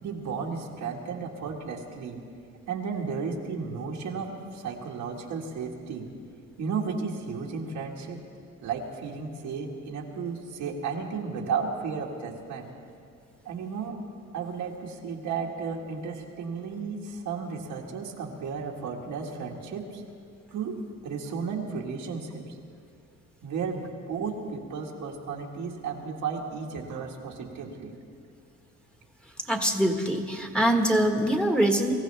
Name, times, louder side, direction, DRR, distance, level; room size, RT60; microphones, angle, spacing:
voice 1, 0.0-2.2 2.7-6.1 6.6-8.2 8.6-12.7 13.5-14.0 14.3-20.0 20.5-22.6 23.4-27.9, right 5 dB, 80° right, 0 dB, 1.9 m, -34 dB
voice 2, 29.5-31.9, right 1 dB, 5° left, 3 dB, 1.5 m, -24 dB
24.5 x 15.0 x 3.4 m, 2.3 s
cardioid pair, 90°, 30 cm